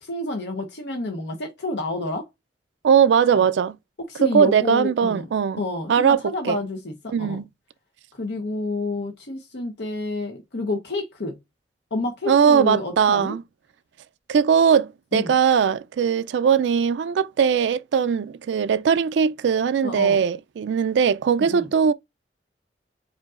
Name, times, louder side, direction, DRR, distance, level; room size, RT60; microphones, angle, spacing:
voice 1, 0.0-2.3 3.2-3.5 4.1-5.3 5.6-7.4 8.2-11.4 11.9-13.3 15.1-15.3 19.8-20.2 21.4-21.7, left 2 dB, 70° left, 0.9 m, -29 dB
voice 2, 2.8-3.7 4.2-5.6 5.9-6.6 7.1-7.4 12.3-13.4 14.3-21.9, right 7 dB, 90° right, 0.3 m, -20 dB
5.0 x 2.6 x 2.4 m
head